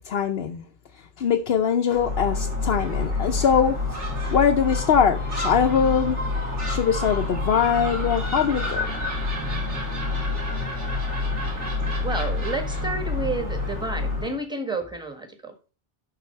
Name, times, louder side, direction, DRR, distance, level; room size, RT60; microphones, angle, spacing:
voice 1, 0.1-0.6 1.2-3.8 4.3-6.2 6.7-8.8, left 7 dB, 60° left, 0.9 m, -22 dB
Gull seagull, 1.9-14.4, left 3 dB, 80° right, 3.3 m, -28 dB
voice 2, 12.0-15.5, right 2 dB, 5° right, 1.5 m, -30 dB
12.0 x 4.1 x 4.4 m
omnidirectional pair, 1.2 m